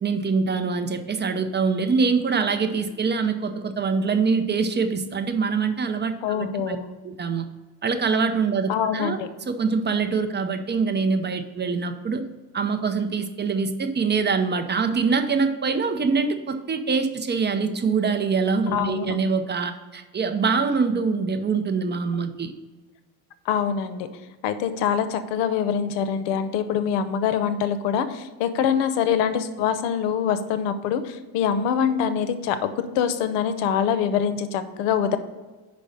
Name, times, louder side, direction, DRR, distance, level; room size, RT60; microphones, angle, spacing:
voice 1, 0.0-6.8 7.0-7.5 7.8-12.2 12.5-22.5, right 5 dB, 25° right, 8 dB, 0.6 m, -24 dB
voice 2, 6.2-6.9 8.7-9.3 18.7-19.1 23.5-24.1 24.4-35.2, left 8 dB, 90° left, 11 dB, 0.8 m, -24 dB
5.4 x 5.2 x 6.3 m, 1.3 s
cardioid pair, 110°, 41 cm